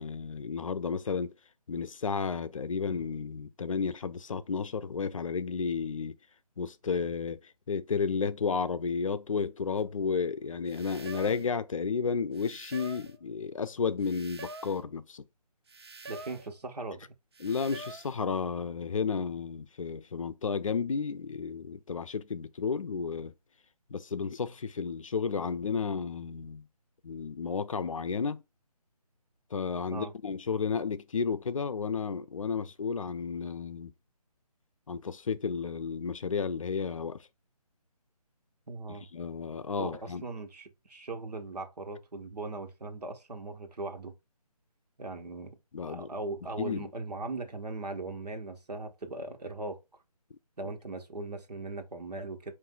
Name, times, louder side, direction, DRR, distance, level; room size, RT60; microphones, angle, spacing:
voice 1, 0.0-1.3 1.7-6.2 6.6-15.2 17.4-23.3 23.9-26.7 27.0-28.4 29.5-33.9 34.9-37.3 39.1-40.2 45.7-46.1 46.6-46.9, left 5 dB, 55° left, 0.5 m, -32 dB
sound 1, 9.8-9.9 10.7-11.5 12.3-13.2 14.0-14.8 15.7-16.5 17.3-18.2, right 2 dB, 40° right, 0.4 m, -46 dB
voice 2, 16.1-17.0 29.9-30.1 38.7-39.0 39.8-44.1 45.0-45.6 45.9-49.8 50.6-52.5, right 3 dB, 80° right, 1.2 m, -39 dB
4.7 x 2.6 x 3.8 m
figure-of-eight pair, 160°, 20 cm